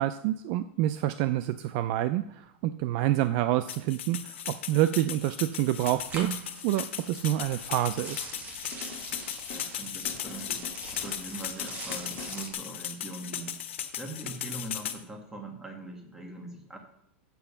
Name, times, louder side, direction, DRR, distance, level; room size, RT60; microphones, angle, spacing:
voice 1, 0.0-6.3 6.6-8.3, right 14 dB, 45° right, 12 dB, 0.4 m, -28 dB
sound 1, 3.7-15.0, left 10 dB, 90° left, 1.0 m, -37 dB
sound 2, 5.8-12.5, right 5 dB, 25° right, 2.0 m, -41 dB
sound 3, 8.7-12.4, left 4 dB, 40° left, 1.9 m, -45 dB
voice 2, 9.5-13.6 14.0-16.8, right 2 dB, 10° right, 2 dB, 1.7 m, -42 dB
7.0 x 6.4 x 7.1 m, 0.73 s
supercardioid pair, 155°, 6 cm